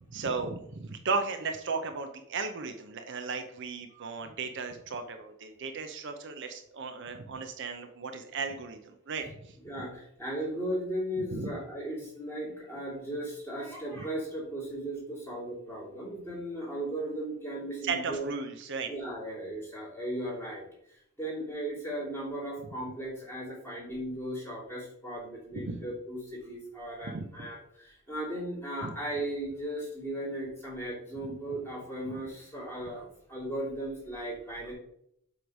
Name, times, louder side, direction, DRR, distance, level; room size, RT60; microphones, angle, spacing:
voice 1, 0.1-9.6 11.3-11.5 14.0-14.1 17.8-18.9 25.5-25.8 27.1-27.3 28.8-28.9, right 4 dB, 55° right, 6 dB, 0.6 m, -35 dB
voice 2, 3.9-4.3 9.6-18.3 18.9-20.6 21.2-34.7, right 1 dB, 10° left, -6 dB, 2.8 m, -36 dB
7.9 x 3.2 x 5.3 m, 0.73 s
head